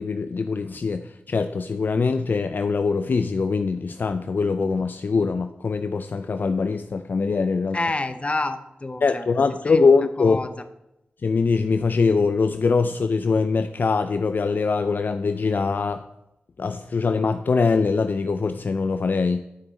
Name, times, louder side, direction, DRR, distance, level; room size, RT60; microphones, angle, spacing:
voice 1, 0.0-7.8 9.0-10.5 11.2-16.0 16.6-19.4, left 4 dB, 55° left, 9 dB, 0.4 m, -22 dB
voice 2, 7.7-9.3 9.6-9.9 10.2-10.5, left 2 dB, 35° left, 10 dB, 0.9 m, -28 dB
10.0 x 6.1 x 4.1 m, 0.88 s
cardioid pair, 50°, 4 cm